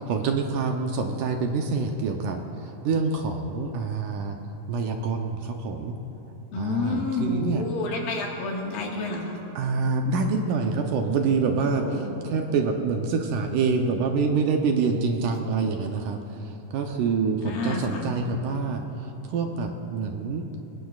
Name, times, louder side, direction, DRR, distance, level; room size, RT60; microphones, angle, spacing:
voice 1, 0.0-4.4 4.7-6.0 6.6-7.6 9.6-20.5, right 4 dB, 75° right, 3 dB, 2.1 m, -26 dB
voice 2, 6.5-9.4 11.6-12.0 17.4-18.1, left 3 dB, 80° left, -1 dB, 3.4 m, -29 dB
22.5 x 19.5 x 2.4 m, 3.0 s
omnidirectional pair, 4.2 m